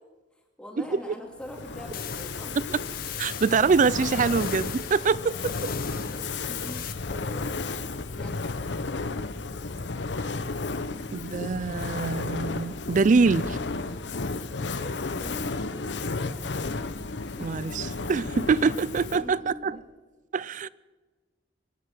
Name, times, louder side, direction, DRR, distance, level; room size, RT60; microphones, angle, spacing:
voice 1, 0.6-2.7 5.0-7.7 8.1-8.5 14.6-15.6 16.0-16.5 17.5-17.9 18.9-19.8, equal, 5° left, 2.3 m, -44 dB
Fire, 1.4-19.4, left 3 dB, 85° left, 0.9 m, -33 dB
sound 1, 1.9-6.9, left 11 dB, 55° left, 1.1 m, -40 dB
voice 2, 3.2-5.5 11.1-13.6 17.4-19.8 20.3-20.7, right 4 dB, 45° right, 0.4 m, -24 dB
24.0 x 9.7 x 6.0 m
head